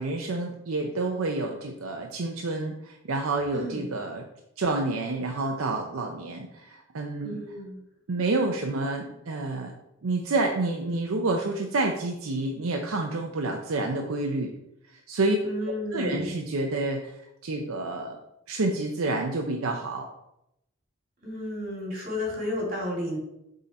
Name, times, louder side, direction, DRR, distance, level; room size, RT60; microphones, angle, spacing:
voice 1, 0.0-4.2 4.6-7.4 8.1-9.7 10.0-14.5 14.9-15.4 15.9-18.2 18.5-20.1, right 2 dB, 75° right, 3 dB, 0.6 m, -29 dB
voice 2, 3.5-3.8 7.2-7.8 15.4-16.3 21.2-23.2, left 1 dB, 40° right, -3 dB, 2.5 m, -32 dB
6.7 x 3.8 x 4.1 m, 0.83 s
head